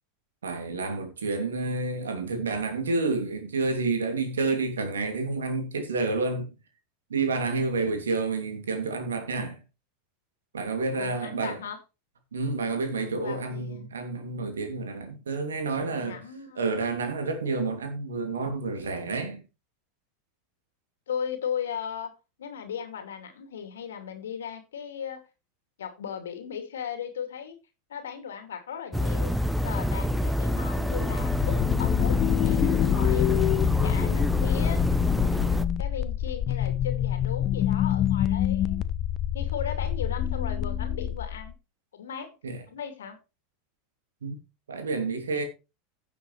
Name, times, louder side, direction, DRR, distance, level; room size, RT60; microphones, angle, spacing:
voice 1, 0.4-6.5 7.1-9.6 10.5-11.6 12.3-16.2 16.6-19.4 42.4-42.6 44.2-44.4 44.7-45.4, right 3 dB, 75° right, 2.7 m, -29 dB
voice 2, 10.9-11.8 13.0-13.9 15.9-17.0 21.1-22.1 22.4-25.2 25.8-27.5 27.9-29.3 29.6-33.5 33.8-38.9 39.3-41.6 41.9-42.4 42.7-43.2, left 8 dB, 70° left, 2.6 m, -37 dB
sound 1, 28.9-35.6, left 1 dB, ahead, 0.8 m, -27 dB
sound 2, 30.9-41.5, left 10 dB, 40° left, 0.7 m, -26 dB
16.0 x 7.0 x 3.3 m
figure-of-eight pair, 85°, 0 cm